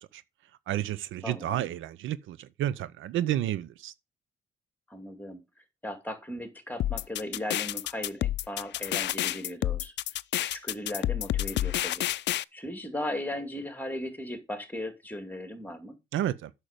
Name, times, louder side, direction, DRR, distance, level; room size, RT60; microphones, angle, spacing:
voice 1, 0.7-3.9 16.1-16.5, right 12 dB, 80° right, 0.7 m, -31 dB
voice 2, 1.2-1.6 4.9-5.4 5.8-9.9 10.4-16.0, left 1 dB, 10° left, 2.4 m, -37 dB
sound 1, 6.8-12.4, left 13 dB, 65° left, 0.4 m, -29 dB
8.9 x 6.6 x 5.1 m
cardioid pair, 90°, 20 cm